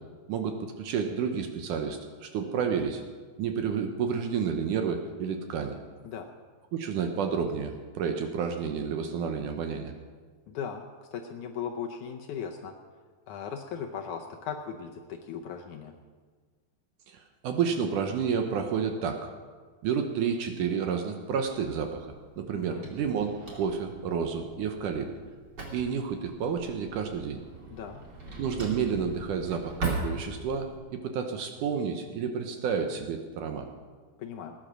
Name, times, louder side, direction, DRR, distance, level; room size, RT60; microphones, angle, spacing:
voice 1, 0.3-3.0 3.4-5.8 6.7-9.9 17.1-19.3 19.8-25.1 25.7-27.4 28.4-33.7, right 6 dB, 70° right, 5 dB, 2.1 m, -30 dB
voice 2, 10.5-10.8 11.1-12.7 13.3-15.9 22.5-22.9 27.7-28.0 34.2-34.5, left 7 dB, 75° left, 3 dB, 1.9 m, -37 dB
Drawer open or close, 21.4-30.8, right 3 dB, 30° right, 2.6 m, -40 dB
19.0 x 10.0 x 6.2 m, 1.5 s
omnidirectional pair, 4.3 m